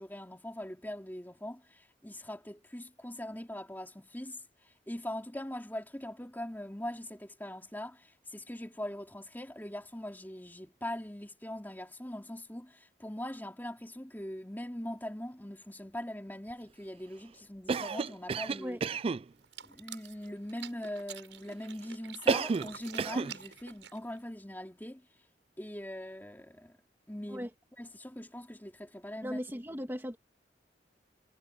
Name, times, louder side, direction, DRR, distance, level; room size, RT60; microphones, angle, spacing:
voice 1, 0.0-4.4 4.9-18.8 19.6-25.0 25.6-26.8 27.1-27.5 27.8-29.4, left 1 dB, 10° left, 3.1 m, -41 dB
Cough, 17.7-19.2 22.3-22.7 23.0-23.3, right 4 dB, 30° right, 0.3 m, -30 dB
sound 1, 19.4-24.2, right 9 dB, 85° right, 7.0 m, -49 dB
voice 2, 29.2-30.2, equal, 15° right, 2.5 m, -37 dB
head